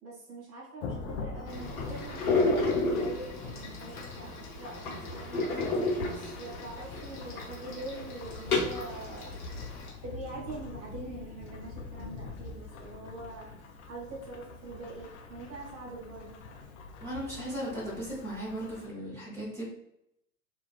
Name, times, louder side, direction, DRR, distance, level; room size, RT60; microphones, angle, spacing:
voice 1, 0.0-5.5 6.0-9.4 10.0-13.5 13.9-16.4, right 2 dB, 30° right, -4 dB, 0.9 m, -43 dB
Thunderstorm / Rain, 0.8-18.9, left 4 dB, 50° left, 0.6 m, -44 dB
sound 1, 1.5-9.9, left 2 dB, 70° left, 1.0 m, -32 dB
voice 2, 17.0-19.6, right 1 dB, 5° left, -9 dB, 0.8 m, -37 dB
2.4 x 2.2 x 2.3 m, 0.77 s
figure-of-eight pair, 85°, 45 cm